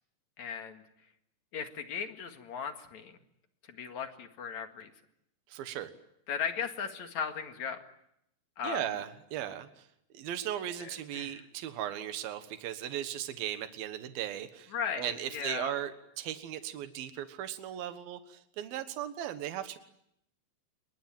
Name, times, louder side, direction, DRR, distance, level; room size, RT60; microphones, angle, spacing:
voice 1, 0.4-0.8 1.5-3.2 3.7-4.9 6.3-7.8 8.6-8.8 10.8-11.4 14.7-15.8, left 7 dB, 55° left, 6 dB, 3.0 m, -37 dB
voice 2, 5.5-5.9 8.6-9.9 10.1-19.8, right 11 dB, 80° right, 9 dB, 3.2 m, -37 dB
26.5 x 23.0 x 9.1 m, 0.77 s
omnidirectional pair, 4.2 m